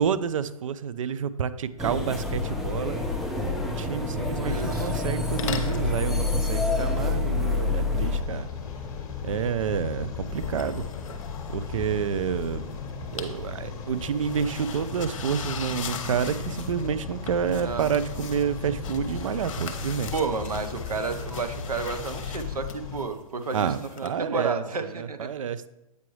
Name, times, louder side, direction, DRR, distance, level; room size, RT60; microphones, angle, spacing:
voice 1, 0.0-3.0 3.6-8.5 9.2-10.9 11.5-12.6 13.1-20.1 23.5-24.6 25.0-25.7, right 7 dB, 60° right, 14 dB, 0.4 m, -29 dB
sound 1, 1.8-8.2, left 3 dB, ahead, 0.3 m, -27 dB
voice 2, 4.2-4.9 17.5-17.9 20.1-25.3, right 4 dB, 85° right, 9 dB, 0.8 m, -31 dB
sound 2, 4.8-5.1 5.4-5.9 6.8-8.5 10.2-12.4 12.7-13.4 13.7-24.1, left 6 dB, 60° left, 0.8 m, -40 dB
sound 3, 8.0-23.1, left 5 dB, 20° left, 1.1 m, -36 dB
8.2 x 4.7 x 3.1 m, 0.92 s
hypercardioid pair, 135°, 19 cm